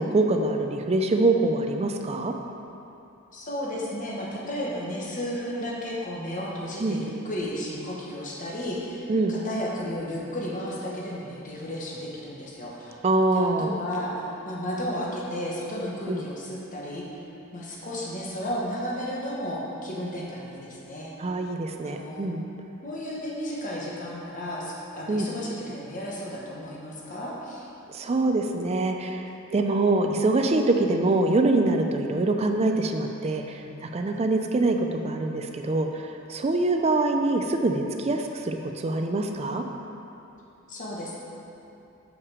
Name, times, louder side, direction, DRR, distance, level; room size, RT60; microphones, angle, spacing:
voice 1, 0.0-2.3 6.8-7.0 9.1-9.4 13.0-13.7 16.1-16.2 21.2-22.4 25.1-25.3 27.9-39.6, right 2 dB, 30° right, 4 dB, 0.4 m, -24 dB
voice 2, 3.3-13.0 13.3-17.0 17.5-21.1 21.8-22.3 22.8-27.7 33.6-33.9 40.7-41.2, equal, 40° left, -4 dB, 1.2 m, -33 dB
6.6 x 5.8 x 4.8 m, 2.9 s
head